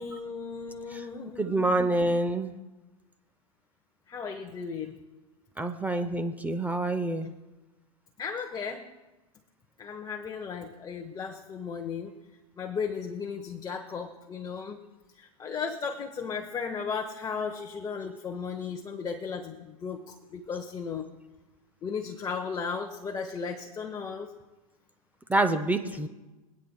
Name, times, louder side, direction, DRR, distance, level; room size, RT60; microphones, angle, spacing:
voice 1, 0.0-1.7 4.1-5.0 8.2-8.8 9.8-12.1 12.6-14.8 15.2-21.0 21.8-24.3 25.8-26.0, left 5 dB, 20° left, 2 dB, 1.1 m, -35 dB
voice 2, 1.4-2.5 5.6-7.3 25.3-26.1, right 2 dB, 10° right, 7 dB, 0.7 m, -27 dB
25.5 x 8.7 x 2.3 m, 1.1 s
hypercardioid pair, 105°, 19 cm